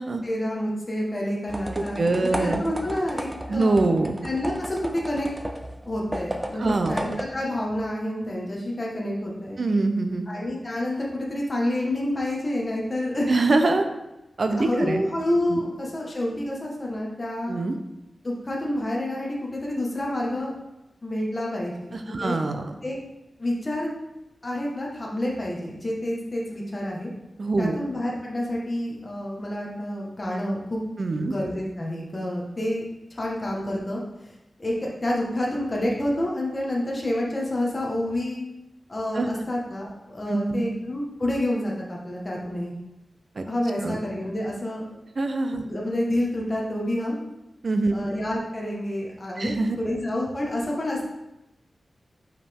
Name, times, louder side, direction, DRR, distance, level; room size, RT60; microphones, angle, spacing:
voice 1, 0.2-3.8 4.2-5.3 5.9-9.6 10.3-13.3 14.6-17.6 18.2-20.5 21.0-21.9 22.2-22.4 22.8-23.0 23.4-23.9 24.4-27.1 27.6-30.8 31.2-32.8 33.1-38.4 38.9-42.7 43.5-45.0 45.6-47.2 47.9-51.0, left 1 dB, 35° left, -3 dB, 1.4 m, -28 dB
sound 1, 1.5-7.7, right 1 dB, 15° right, 0.6 m, -34 dB
voice 2, 1.7-2.6 3.5-4.2 6.6-7.0 9.6-10.3 13.3-13.8 14.4-15.0 15.5-15.6 17.5-17.8 21.9-22.7 27.4-27.8 31.0-31.3 39.1-39.3 40.3-40.7 43.4-43.5 43.8-44.0 45.2-45.6 47.6-48.1 49.4-49.8, right 3 dB, 60° right, 6 dB, 0.6 m, -24 dB
5.5 x 5.1 x 3.5 m, 0.93 s
wide cardioid pair, 80°, 0 cm